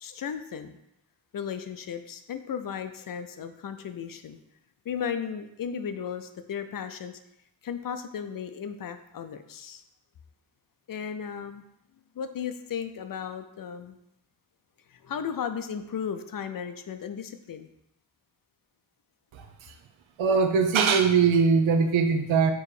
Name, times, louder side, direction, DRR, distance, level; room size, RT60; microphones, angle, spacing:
voice 1, 0.0-0.8 1.3-4.4 4.8-7.2 7.6-9.8 10.9-11.6 12.1-14.0 14.9-17.7, left 7 dB, 50° left, 9 dB, 0.5 m, -35 dB
voice 2, 20.2-22.5, right 5 dB, 80° right, 6 dB, 0.8 m, -21 dB
6.7 x 3.0 x 4.8 m, 0.85 s
cardioid pair, 90°, 46 cm